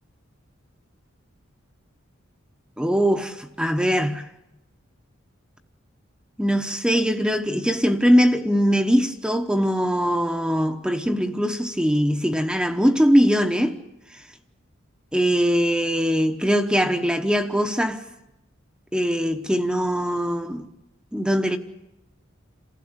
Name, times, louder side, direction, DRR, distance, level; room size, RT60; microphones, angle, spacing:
voice 1, 2.8-4.2 6.4-13.8 15.1-18.0 18.9-20.7 21.1-21.6, equal, 5° right, 1.0 m, -21 dB
28.0 x 15.5 x 8.0 m
head